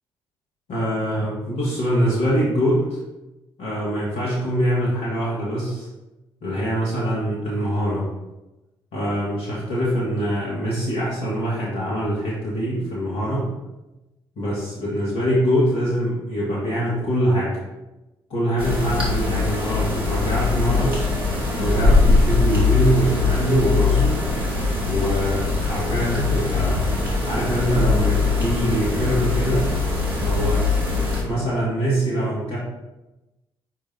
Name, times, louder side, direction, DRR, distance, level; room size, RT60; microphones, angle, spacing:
voice 1, 0.7-3.0 3.6-5.9 6.4-8.1 8.9-13.5 14.4-17.6 18.3-21.1 21.6-24.2 24.9-26.8 27.3-29.7 30.2-30.7 31.2-32.6, equal, 65° left, -7 dB, 1.6 m, -23 dB
sound 1, 18.6-31.2, left 3 dB, 85° right, 1.2 m, -21 dB
5.0 x 4.6 x 4.3 m, 1.0 s
figure-of-eight pair, 40°, 12 cm